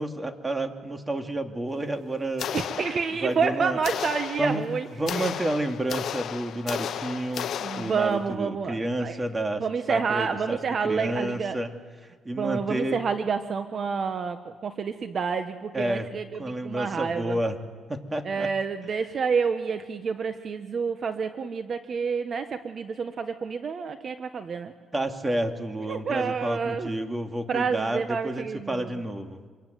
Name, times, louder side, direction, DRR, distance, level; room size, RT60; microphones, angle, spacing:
voice 1, 0.0-2.6 3.2-3.8 4.4-4.7 4.9-10.6 10.8-11.7 12.2-13.0 15.7-16.1 16.4-17.6 17.9-18.5 24.9-29.5, right 1 dB, 20° right, 5 dB, 2.6 m, -30 dB
sound 1, 2.4-3.4 3.8-8.3, left 9 dB, 70° left, 1.0 m, -34 dB
voice 2, 2.5-4.9 5.2-5.3 7.6-9.2 9.6-11.6 12.4-17.4 18.2-24.7 25.9-26.9 27.5-28.9, right 5 dB, 50° right, 8 dB, 1.3 m, -29 dB
26.5 x 23.0 x 9.4 m, 1.5 s
cardioid pair, 90°, 0 cm